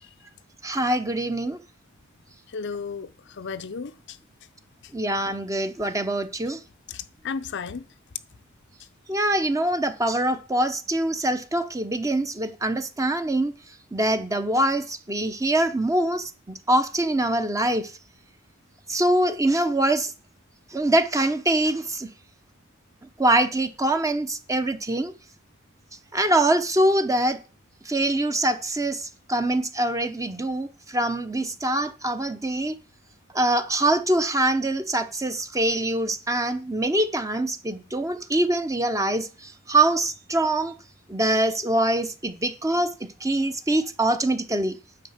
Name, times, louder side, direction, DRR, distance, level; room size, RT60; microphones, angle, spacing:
voice 1, 0.6-1.6 4.9-6.6 9.1-13.5 13.9-17.9 18.9-20.1 20.7-22.1 23.2-25.1 26.1-27.4 27.8-32.8 33.3-40.7 41.1-42.9 43.2-44.8, right 1 dB, 15° right, 0.9 m, -24 dB
voice 2, 2.5-4.2 6.9-7.9, left 5 dB, 60° left, 0.6 m, -34 dB
9.9 x 4.9 x 8.0 m
head